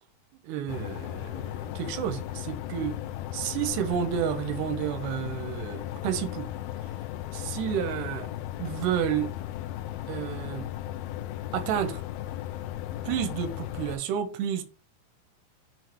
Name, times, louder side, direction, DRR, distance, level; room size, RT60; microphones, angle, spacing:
voice 1, 0.4-3.0 3.3-6.5 7.3-8.3 8.6-9.3 10.1-10.7 11.5-12.0 13.0-14.6, right 9 dB, 90° right, 2.9 m, -30 dB
sound 1, 0.7-14.0, left 13 dB, 85° left, 2.1 m, -36 dB
7.6 x 2.6 x 5.7 m
omnidirectional pair, 4.8 m